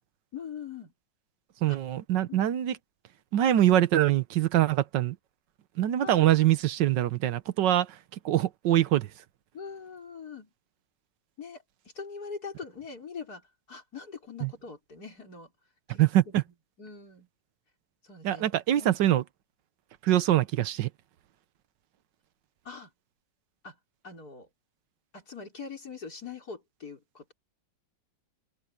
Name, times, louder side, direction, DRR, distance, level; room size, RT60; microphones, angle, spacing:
voice 1, 0.3-0.9 1.7-1.8 2.3-2.6 6.0-6.2 9.5-10.5 11.4-11.6 11.9-15.5 15.9-16.4 16.8-17.3 18.0-19.0 22.6-22.9 23.6-23.8 24.0-24.5 25.1-27.3, left 5 dB, 60° left, 5.3 m, -42 dB
voice 2, 1.6-2.8 3.3-5.2 5.8-8.0 8.2-9.1 14.4-14.5 16.0-16.4 18.2-19.2 20.0-20.9, right 12 dB, 80° right, 1.5 m, -24 dB
open air
omnidirectional pair, 1.9 m